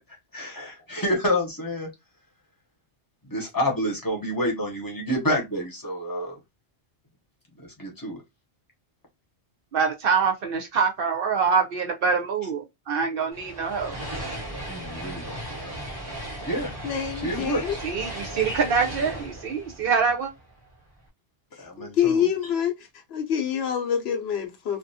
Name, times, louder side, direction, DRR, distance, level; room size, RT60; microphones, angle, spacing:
voice 1, 0.3-1.9 3.2-6.4 7.6-8.2 14.7-15.8 16.4-16.7 17.1-17.8 18.4-18.6 21.6-22.3, equal, 20° left, 0.7 m, -29 dB
voice 2, 9.7-13.9 17.8-20.3, right 5 dB, 65° right, 0.7 m, -25 dB
sound 1, 13.3-20.7, right 1 dB, 20° right, 0.9 m, -36 dB
voice 3, 16.8-17.7 21.8-22.7 23.1-24.8, left 8 dB, 70° left, 0.8 m, -26 dB
2.4 x 2.2 x 2.6 m
omnidirectional pair, 1.1 m